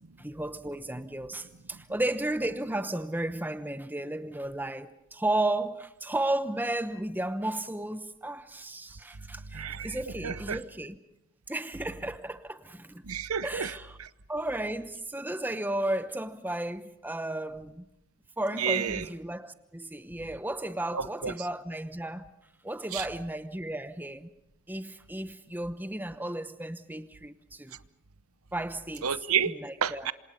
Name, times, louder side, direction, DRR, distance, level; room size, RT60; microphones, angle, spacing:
voice 1, 0.2-11.0 11.5-13.0 13.4-14.0 14.3-17.9 18.4-22.3 22.6-24.3 24.7-27.8 28.5-29.1 29.4-30.1, right 1 dB, 10° right, 0.9 m, -34 dB
voice 2, 9.5-10.6 13.0-13.7 14.0-14.1 18.6-19.0 20.9-21.5 22.9-23.0 29.0-30.1, right 7 dB, 80° right, 0.9 m, -31 dB
27.0 x 27.0 x 5.5 m
head